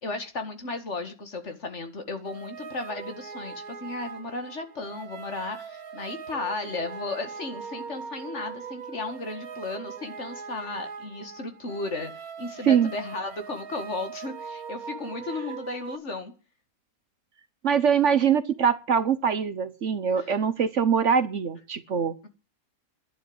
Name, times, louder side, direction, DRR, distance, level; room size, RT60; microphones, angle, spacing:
voice 1, 0.0-16.3 20.2-20.3, left 3 dB, 50° left, 7 dB, 2.2 m, -35 dB
sound 1, 2.2-16.0, right 6 dB, 75° right, 1.7 m, -41 dB
voice 2, 17.6-22.1, right 7 dB, 55° right, 14 dB, 1.2 m, -23 dB
11.0 x 10.5 x 8.0 m, 0.35 s
omnidirectional pair, 1.6 m